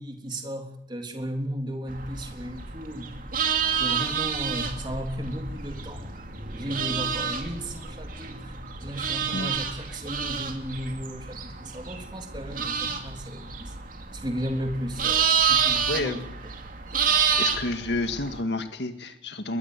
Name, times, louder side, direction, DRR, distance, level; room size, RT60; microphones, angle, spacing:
voice 1, 0.0-3.2 3.8-6.2 6.5-8.5 8.8-13.7 14.1-16.2 17.1-17.2, equal, 25° right, 4 dB, 3.4 m, -35 dB
sound 1, 1.9-18.4, right 7 dB, 50° right, 2.7 m, -29 dB
voice 2, 15.9-16.2 17.4-19.6, left 2 dB, 70° left, 8 dB, 1.9 m, -30 dB
22.5 x 18.5 x 8.3 m, 0.74 s
head